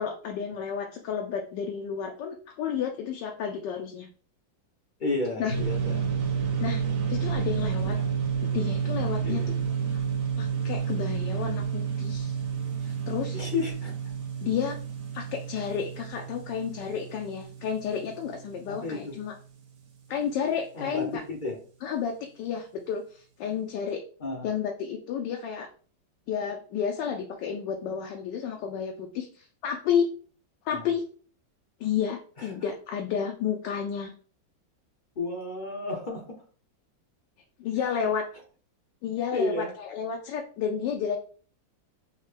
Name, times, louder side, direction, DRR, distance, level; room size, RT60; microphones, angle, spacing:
voice 1, 0.0-4.1 5.4-5.6 6.6-6.8 7.1-8.0 8.4-9.6 9.9-10.0 10.4-12.4 12.8-13.5 14.4-14.8 15.1-19.3 20.1-21.2 21.8-24.0 24.4-25.7 26.3-30.1 30.6-31.0 31.8-34.1 37.6-38.2 39.0-41.2, left 7 dB, 75° left, 3 dB, 1.2 m, -31 dB
voice 2, 5.0-6.1 7.8-8.1 9.2-9.5 13.3-13.9 18.7-19.2 20.7-21.6 24.2-24.5 30.7-30.9 32.4-32.5 35.2-36.4 39.3-39.7, left 2 dB, 45° left, -1 dB, 0.6 m, -32 dB
sound 1, 5.5-19.0, right 7 dB, 85° right, 1.8 m, -30 dB
6.4 x 2.2 x 3.2 m, 0.42 s
omnidirectional pair, 2.1 m